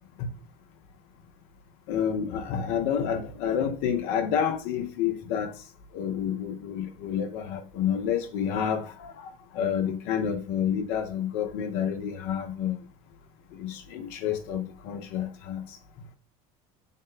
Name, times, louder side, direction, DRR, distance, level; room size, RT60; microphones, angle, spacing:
voice 1, 1.9-5.6 5.9-12.8 13.5-15.8, left 8 dB, 65° left, 0.5 m, -29 dB
3.5 x 2.0 x 3.8 m
hypercardioid pair, 80°, 19 cm